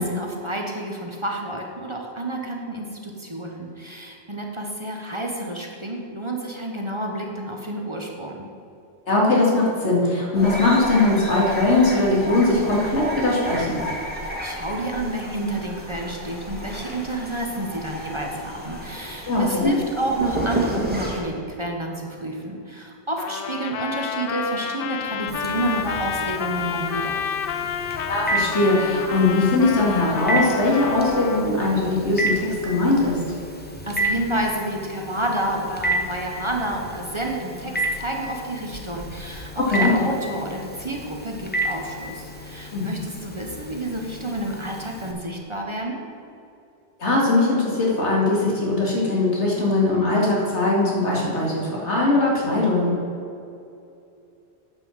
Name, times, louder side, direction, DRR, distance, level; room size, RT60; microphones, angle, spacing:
voice 1, 0.0-8.4 14.4-27.1 33.8-46.0, right 1 dB, 25° right, 0 dB, 1.0 m, -29 dB
voice 2, 9.1-13.8 19.3-19.8 28.1-33.2 39.7-39.9 42.7-42.9 47.0-53.0, left 2 dB, 85° left, -4 dB, 2.6 m, -20 dB
sound 1, 10.3-21.2, equal, 10° right, 1.8 m, -32 dB
Trumpet, 23.2-31.5, left 7 dB, 60° left, 0.7 m, -29 dB
Telephone, 25.3-45.1, right 1 dB, 10° left, 0.8 m, -32 dB
9.6 x 5.6 x 7.1 m, 2.6 s
omnidirectional pair, 1.1 m